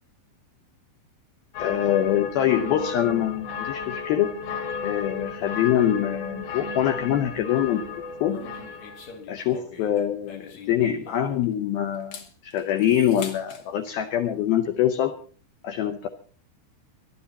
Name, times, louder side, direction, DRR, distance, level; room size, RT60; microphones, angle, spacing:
sound 1, 1.5-9.2, left 5 dB, 65° left, 4.0 m, -34 dB
voice 1, 1.6-4.3 4.8-7.9 8.2-8.4 9.3-15.1 15.6-16.1, left 10 dB, 85° left, 7 dB, 2.1 m, -24 dB
sound 2, 8.3-11.5 11.9-13.6, left 5 dB, 50° left, 2.4 m, -43 dB
22.0 x 12.0 x 4.1 m, 0.42 s
omnidirectional pair, 5.6 m